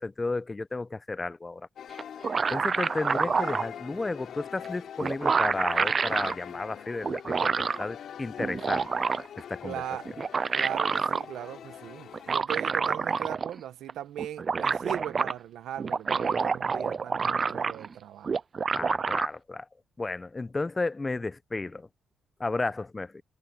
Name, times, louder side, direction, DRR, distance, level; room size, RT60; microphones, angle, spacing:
voice 1, 0.0-1.7 2.5-9.1 9.4-9.8 18.7-19.6 20.0-21.9 22.4-23.2, left 3 dB, 25° left, 0.9 m, -33 dB
sound 1, 1.8-12.4, left 9 dB, 75° left, 3.0 m, -43 dB
sound 2, 2.0-3.7 4.6-4.7 5.0-6.3 7.0-7.8 8.4-9.4 10.1-11.2 12.1-13.6 13.9-14.0 14.2-15.3 15.8-17.9 18.2-19.3, right 5 dB, 45° right, 0.3 m, -28 dB
voice 2, 9.6-10.1 10.5-18.3, right 11 dB, 85° right, 1.1 m, -38 dB
cardioid pair, 75°, 0 cm